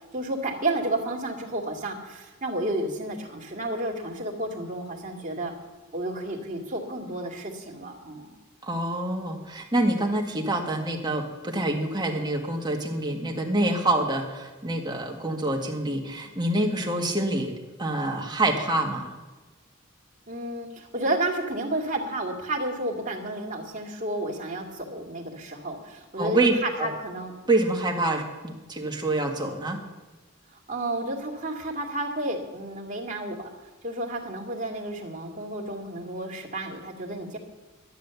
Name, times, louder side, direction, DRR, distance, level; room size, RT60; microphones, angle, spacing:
voice 1, 0.1-5.5 5.9-8.3 20.3-27.3 30.5-33.5 33.8-37.4, right 1 dB, 40° right, 0 dB, 2.3 m, -31 dB
voice 2, 8.6-17.5 17.8-19.1 26.2-26.9 27.5-29.8, right 2 dB, 20° right, 1 dB, 1.8 m, -26 dB
12.0 x 10.0 x 7.0 m, 1.2 s
head